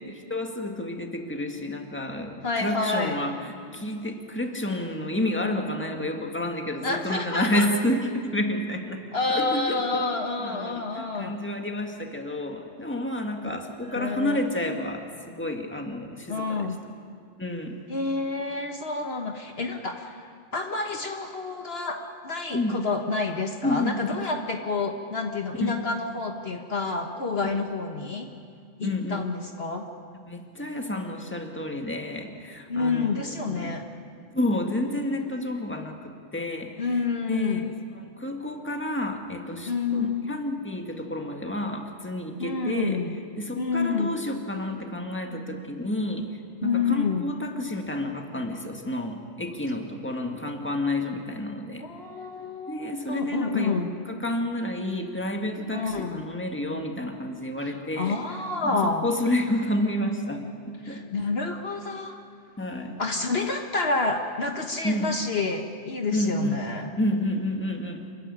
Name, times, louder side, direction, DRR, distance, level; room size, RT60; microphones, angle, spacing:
voice 1, 0.1-9.0 9.3-16.7 17.4-17.8 22.5-22.8 23.6-24.3 25.5-25.8 27.4-27.6 28.8-29.2 30.2-33.8 34.3-36.9 37.3-43.0 43.4-46.3 46.6-51.9 52.7-53.8 54.1-58.2 58.6-61.0 62.6-63.0 64.8-65.2 66.1-66.6 67.0-68.1, left 1 dB, 10° left, 3 dB, 1.9 m, -30 dB
voice 2, 2.4-3.2 6.8-7.7 9.1-11.4 13.4-13.5 13.9-14.4 16.3-16.8 17.9-28.3 28.8-29.9 32.7-33.8 36.8-37.7 39.6-40.2 42.4-43.1 43.6-44.2 46.6-47.3 51.8-53.9 55.7-56.2 57.6-59.1 60.8-62.2 63.0-66.9, left 4 dB, 55° left, 3 dB, 1.5 m, -29 dB
27.0 x 15.5 x 10.0 m, 2.2 s
omnidirectional pair, 1.3 m